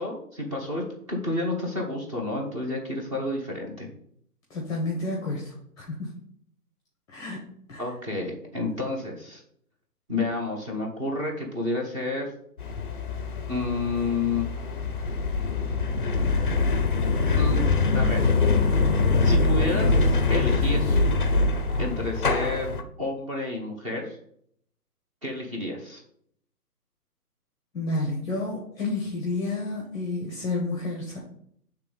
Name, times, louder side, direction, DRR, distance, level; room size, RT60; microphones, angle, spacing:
voice 1, 0.0-3.9 7.8-9.4 10.1-12.3 13.5-14.5 17.3-17.6 17.9-18.2 19.2-21.0 21.8-24.2 25.2-26.0, left 2 dB, 20° right, 1 dB, 1.0 m, -30 dB
voice 2, 4.5-6.1 7.1-7.4 7.7-7.9 27.7-31.2, left 2 dB, 5° left, -2 dB, 0.9 m, -30 dB
sound 1, 12.6-22.8, left 3 dB, 35° left, 0.5 m, -23 dB
6.8 x 3.4 x 5.2 m, 0.66 s
hypercardioid pair, 160°, 47 cm